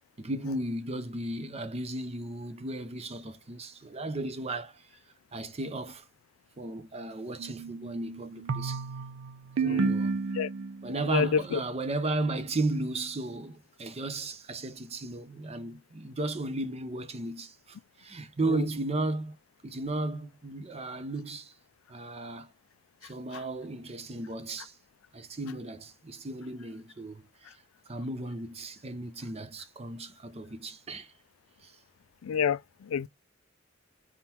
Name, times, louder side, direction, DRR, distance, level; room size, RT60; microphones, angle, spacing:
voice 1, 0.2-4.8 5.3-6.0 6.6-8.8 9.6-10.2 10.8-19.4 19.6-21.5 21.9-22.5 23.0-24.8 25.1-27.5 27.9-31.1 31.6-31.7, right 2 dB, 30° right, 0.6 m, -35 dB
sound 1, 7.4-11.0, right 4 dB, 75° right, 0.5 m, -32 dB
voice 2, 9.6-10.0 10.3-10.5 11.1-11.6 18.5-18.6 32.2-33.1, left 7 dB, 80° left, 0.3 m, -29 dB
4.3 x 3.7 x 2.9 m
head